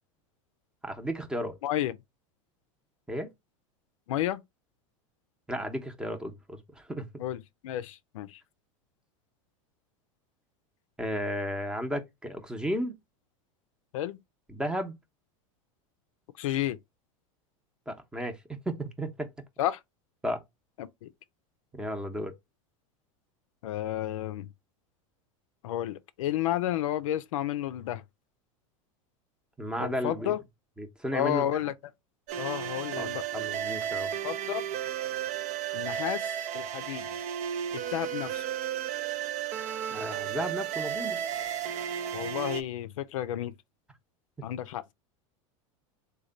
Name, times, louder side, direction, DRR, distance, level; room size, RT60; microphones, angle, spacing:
voice 1, 0.8-1.6 3.1-3.3 5.5-7.1 11.0-13.0 14.5-15.0 17.9-18.4 18.7-19.3 20.2-20.4 21.7-22.3 29.6-30.4 30.8-31.4 33.0-34.1 39.9-41.2 44.4-44.5, equal, 5° right, 0.7 m, -34 dB
voice 2, 1.6-2.0 4.1-4.4 7.2-8.4 13.9-14.2 16.4-16.8 19.6-19.8 20.8-21.1 23.6-24.5 25.6-28.0 29.8-30.4 31.1-31.7 32.4-33.2 34.2-34.6 35.7-37.2 37.7-38.5 42.1-43.5 44.4-44.8, left 12 dB, 85° left, 0.4 m, -31 dB
sound 1, 32.3-42.6, right 9 dB, 45° right, 0.5 m, -33 dB
3.2 x 2.2 x 3.8 m
supercardioid pair, 120°, 17 cm